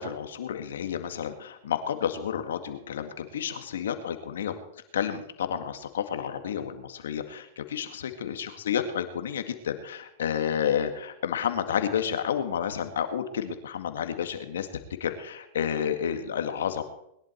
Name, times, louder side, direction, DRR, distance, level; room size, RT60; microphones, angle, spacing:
voice 1, 0.0-4.6 4.9-14.7 15.0-16.8, left 8 dB, 85° left, 8 dB, 2.0 m, -30 dB
21.0 x 11.0 x 4.6 m, 0.78 s
hypercardioid pair, 120°, 0 cm